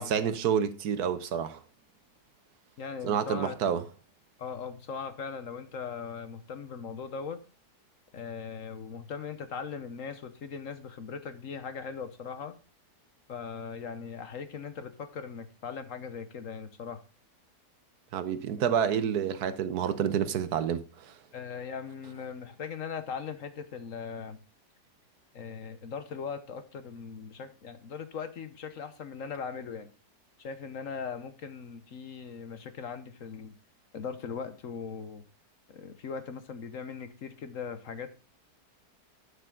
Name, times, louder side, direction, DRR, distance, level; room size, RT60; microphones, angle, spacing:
voice 1, 0.0-1.6 3.0-3.8 18.1-21.1, right 8 dB, 70° right, 1.3 m, -29 dB
voice 2, 2.8-3.5 4.4-7.4 8.1-12.5 13.3-17.0 21.3-24.4 25.3-29.9 30.4-33.6 33.9-35.2 35.7-38.1, left 6 dB, 55° left, 1.2 m, -39 dB
12.0 x 6.8 x 3.7 m
omnidirectional pair, 1.8 m